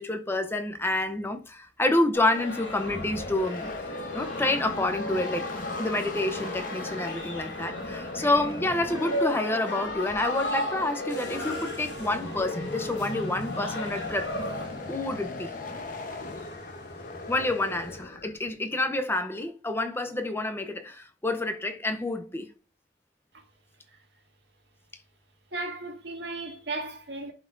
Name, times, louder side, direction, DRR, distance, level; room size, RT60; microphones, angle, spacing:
voice 1, 0.0-3.7 4.1-5.5 5.8-14.3 14.9-15.5 17.3-22.5, left 2 dB, 15° left, 0.6 m, -28 dB
sound 1, 2.1-14.7, left 1 dB, 90° left, 2.4 m, -35 dB
sound 2, 2.4-18.5, left 2 dB, 50° left, 0.9 m, -39 dB
sound 3, 11.1-18.0, left 2 dB, 70° left, 3.1 m, -46 dB
voice 2, 25.5-27.3, right 2 dB, 65° right, 1.8 m, -35 dB
11.0 x 4.2 x 2.5 m
head